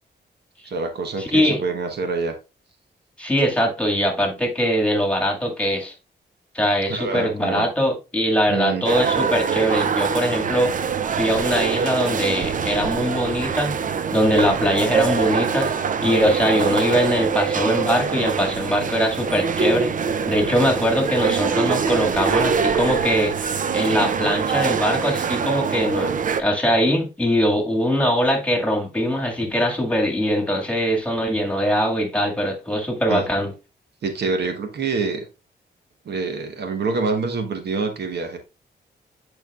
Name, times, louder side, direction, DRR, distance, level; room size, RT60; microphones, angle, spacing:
voice 1, 0.6-2.4 6.9-7.7 8.5-8.9 33.1-33.2 34.0-35.3 36.0-38.4, right 4 dB, 70° right, 1.1 m, -26 dB
voice 2, 1.2-1.6 3.2-5.9 6.5-10.7 11.1-13.7 14.1-19.9 20.3-33.5, equal, 5° left, 1.9 m, -22 dB
sound 1, 8.8-26.4, right 6 dB, 50° right, 0.5 m, -24 dB
9.0 x 4.5 x 2.3 m
cardioid pair, 75°, 18 cm